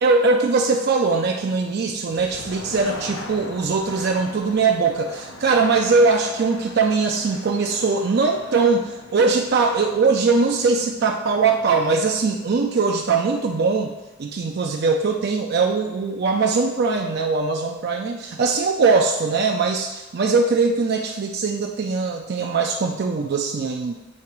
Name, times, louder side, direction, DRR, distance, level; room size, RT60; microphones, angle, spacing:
voice 1, 0.0-13.9 14.2-23.9, right 4 dB, 55° right, 2 dB, 0.4 m, -21 dB
sound 1, 1.9-13.7, left 2 dB, 80° left, 0.8 m, -41 dB
8.5 x 2.9 x 4.6 m, 1.1 s
head